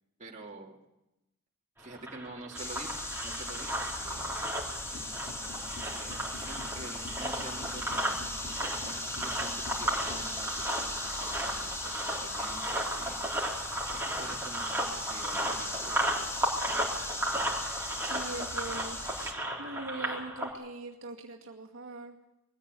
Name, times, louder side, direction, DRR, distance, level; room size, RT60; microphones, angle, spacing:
voice 1, 0.2-0.8 1.8-3.0 3.2-4.4 4.9-5.0 5.6-8.2 8.7-13.2 13.9-16.1 16.7-17.1, right 2 dB, 35° right, -1 dB, 2.7 m, -47 dB
sound 1, 1.8-20.5, right 1 dB, 10° right, 4.1 m, -35 dB
sound 2, 2.6-19.3, left 1 dB, 15° left, 1.8 m, -38 dB
sound 3, 4.9-10.2, left 2 dB, 50° left, 2.7 m, -48 dB
voice 2, 18.0-22.2, right 2 dB, 65° right, -1 dB, 2.2 m, -42 dB
21.5 x 15.0 x 8.4 m, 0.94 s
head